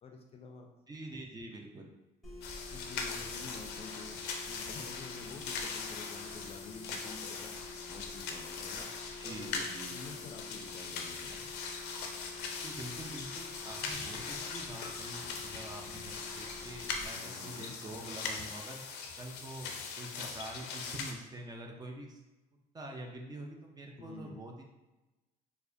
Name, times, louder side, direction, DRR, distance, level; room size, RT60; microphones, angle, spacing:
voice 1, 0.0-0.7 2.7-4.2 4.5-8.9 9.2-9.6 9.9-11.5 17.1-17.8 24.0-24.5, left 4 dB, 35° left, 3 dB, 0.4 m, -49 dB
voice 2, 0.9-1.9 9.2-10.0 12.6-18.8 19.2-19.7 20.0-22.2 22.7-24.6, right 1 dB, 25° right, 1 dB, 0.5 m, -46 dB
sound 1, 2.2-17.1, left 3 dB, ahead, 0.8 m, -49 dB
sound 2, 2.4-21.1, left 5 dB, 90° left, 0.5 m, -41 dB
4.5 x 2.1 x 2.6 m, 1.1 s
cardioid pair, 110°, 17 cm